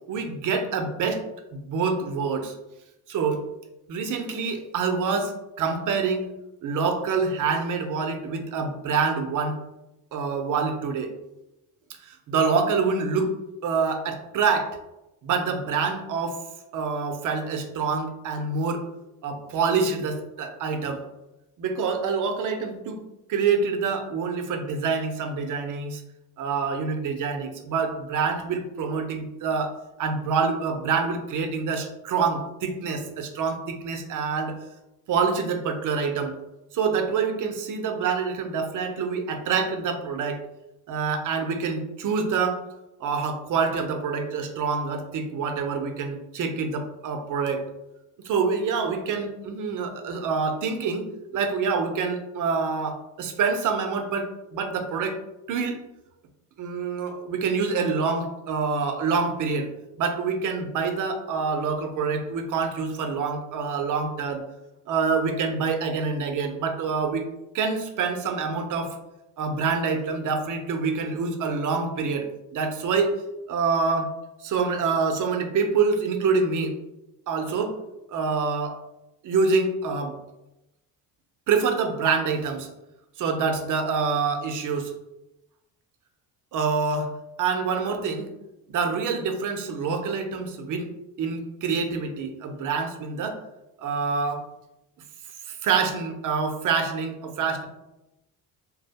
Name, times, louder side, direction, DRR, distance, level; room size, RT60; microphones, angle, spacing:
voice 1, 0.1-1.2 1.5-2.5 3.1-3.4 3.9-6.3 6.6-9.6 10.1-11.1 11.9-13.4 13.6-14.8 15.2-16.4 16.7-18.9 19.2-21.0 21.6-23.0 23.3-26.0 26.4-34.6 35.1-36.3 36.7-40.4 40.9-42.6 43.0-47.6 48.2-51.1 51.3-55.2 55.5-55.8 56.6-59.7 60.0-64.4 64.9-67.3 67.5-69.0 69.4-73.2 73.5-74.1 74.4-76.7 77.3-77.8 78.1-78.8 79.2-80.2 81.5-82.7 83.2-84.9 86.5-88.3 88.7-90.9 91.2-93.4 93.8-94.4 95.5-97.7, right 5 dB, 50° right, 6 dB, 0.5 m, -26 dB
2.3 x 2.1 x 2.7 m, 0.92 s
cardioid pair, 85°, 40 cm